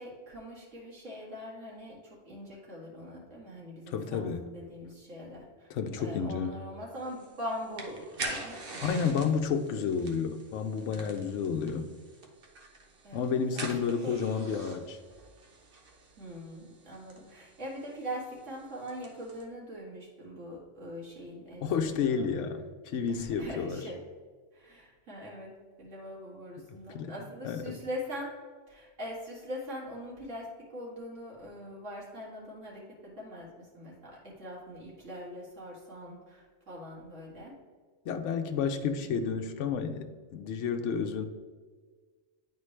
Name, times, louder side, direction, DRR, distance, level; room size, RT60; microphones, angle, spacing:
voice 1, 0.0-5.7 6.0-9.2 13.0-14.1 16.2-22.3 23.1-24.0 24.5-25.5 25.8-28.3 28.7-37.5 39.0-39.1, equal, 85° right, -4 dB, 2.3 m, -42 dB
voice 2, 3.9-4.5 5.7-6.6 8.8-11.9 13.1-15.0 21.6-23.9 26.6-26.7 26.9-27.8 38.1-41.2, left 6 dB, 75° left, 6 dB, 0.9 m, -31 dB
sound 1, 6.9-19.4, right 2 dB, 50° right, 1.2 m, -45 dB
9.6 x 4.4 x 3.2 m, 1.5 s
omnidirectional pair, 1.3 m